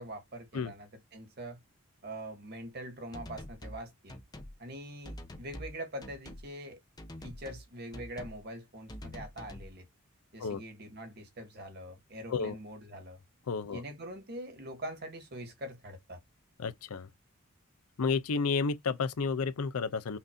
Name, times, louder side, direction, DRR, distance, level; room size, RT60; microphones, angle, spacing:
voice 1, 0.0-1.6 2.0-4.2 4.6-6.8 7.2-9.8 10.3-13.2 13.7-16.2, right 1 dB, 45° right, 1.6 m, -43 dB
sound 1, 3.1-3.8 4.1-4.5 5.0-5.7 6.0-6.4 7.0-7.6 7.9-8.4 8.9-9.7, equal, 20° left, 0.7 m, -45 dB
voice 2, 13.5-13.8 16.6-17.1 18.0-20.2, left 4 dB, 80° left, 0.5 m, -31 dB
5.8 x 2.7 x 2.4 m
head